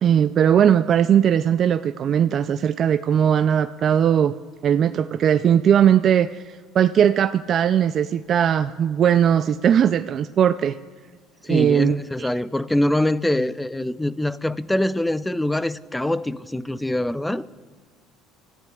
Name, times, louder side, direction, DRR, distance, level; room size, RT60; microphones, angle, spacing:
voice 1, 0.0-4.3 4.6-10.8 11.5-12.3, right 9 dB, 50° right, 0.4 m, -19 dB
voice 2, 11.4-17.4, left 1 dB, 5° left, 0.5 m, -24 dB
27.0 x 14.5 x 2.4 m
supercardioid pair, 95°, 0 cm